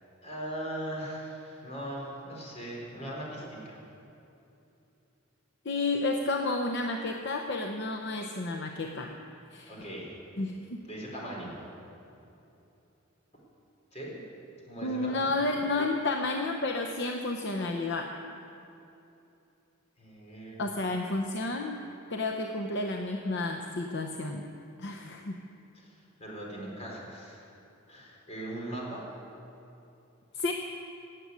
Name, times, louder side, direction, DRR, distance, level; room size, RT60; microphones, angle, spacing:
voice 1, 0.2-3.8 9.7-10.1 10.8-11.6 13.9-14.2 14.6-15.3 20.0-20.9 25.7-27.5 27.9-29.0, right 1 dB, 30° left, -3 dB, 4.0 m, -40 dB
voice 2, 5.6-9.1 9.5-9.7 10.4-10.8 14.8-18.1 20.6-21.8 22.1-24.5 24.8-25.4 30.3-30.5, left 2 dB, 55° left, 3 dB, 0.8 m, -31 dB
16.5 x 7.8 x 9.6 m, 2.8 s
head